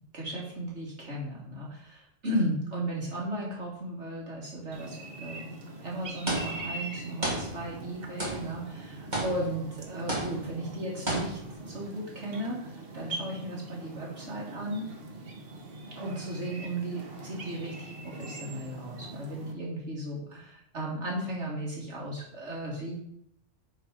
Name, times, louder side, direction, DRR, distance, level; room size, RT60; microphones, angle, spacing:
voice 1, 0.0-14.9 16.0-22.9, right 1 dB, 75° right, -3 dB, 2.9 m, -35 dB
sound 1, 4.7-19.5, right 2 dB, 55° right, 1.3 m, -43 dB
sound 2, 6.3-6.9 7.2-7.9 8.2-8.7 9.1-9.7 10.1-10.6 11.1-11.7, right 1 dB, 40° right, 2.7 m, -33 dB
9.6 x 4.6 x 5.0 m, 0.72 s
omnidirectional pair, 1.2 m